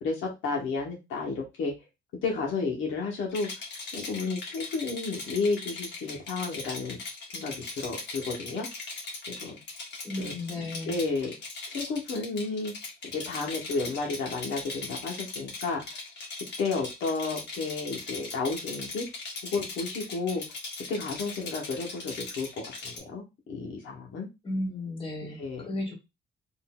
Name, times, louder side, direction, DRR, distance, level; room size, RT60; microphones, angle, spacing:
voice 1, 0.0-1.7 2.2-3.5 3.9-7.0 7.3-8.7 9.3-9.6 10.2-11.3 11.7-12.7 13.1-16.0 16.6-19.1 19.4-20.4 20.9-24.3 25.4-25.7, left 4 dB, 80° left, -1 dB, 1.1 m, -32 dB
Rattle, 3.3-23.0, left 3 dB, 60° left, 1.3 m, -39 dB
voice 2, 10.0-11.0 24.4-25.9, left 1 dB, 25° left, -1 dB, 1.3 m, -34 dB
3.7 x 2.6 x 2.2 m, 0.24 s
cardioid pair, 90°, 20 cm